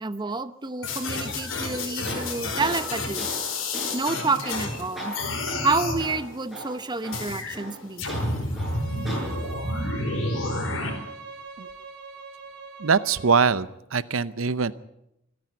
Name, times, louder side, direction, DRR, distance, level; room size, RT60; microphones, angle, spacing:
voice 1, 0.0-3.3 3.9-5.2 5.6-8.0, right 3 dB, 20° right, 12 dB, 0.9 m, -28 dB
sound 1, 0.8-4.8 5.1-6.0 7.1-7.5 8.0-10.9, left 2 dB, 70° left, 5.0 m, -30 dB
Tools, 1.5-9.5, equal, ahead, 7.5 m, -38 dB
Bowed string instrument, 8.5-13.7, right 3 dB, 60° right, 2.9 m, -42 dB
voice 2, 12.8-14.7, right 5 dB, 90° right, 16 dB, 0.8 m, -23 dB
26.5 x 10.5 x 9.4 m, 0.82 s
head